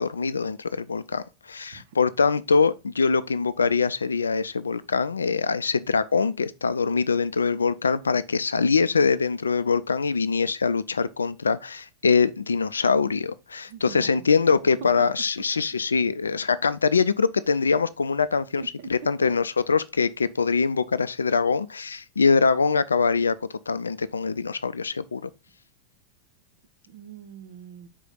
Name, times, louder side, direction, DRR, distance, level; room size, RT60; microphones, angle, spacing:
voice 1, 0.0-18.6 18.9-25.3, left 5 dB, 75° left, 0.4 m, -23 dB
voice 2, 13.7-15.1 18.6-18.9 19.2-19.3 26.9-27.9, right 7 dB, 55° right, 0.9 m, -43 dB
5.6 x 4.9 x 3.8 m
figure-of-eight pair, 90°, 0 cm